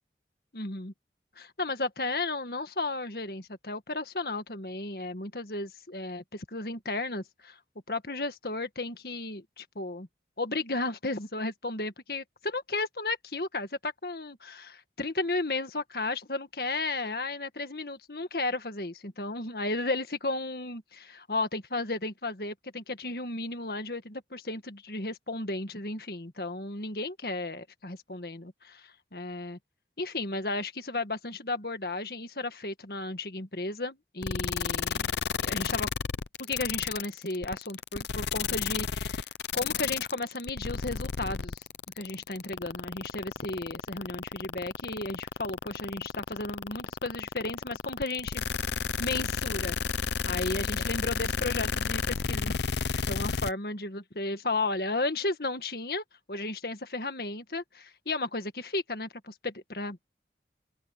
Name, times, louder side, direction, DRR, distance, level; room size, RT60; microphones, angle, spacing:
voice 1, 0.5-0.9 1.4-7.6 7.9-10.1 10.4-28.8 29.1-29.6 30.0-35.1 35.4-35.9 36.4-39.2 39.5-41.6 42.0-48.4 49.0-49.8 50.3-52.5 53.1-60.0, left 2 dB, 60° left, 1.8 m, -34 dB
sound 1, 34.2-53.5, left 6 dB, 80° left, 0.7 m, -31 dB
open air
head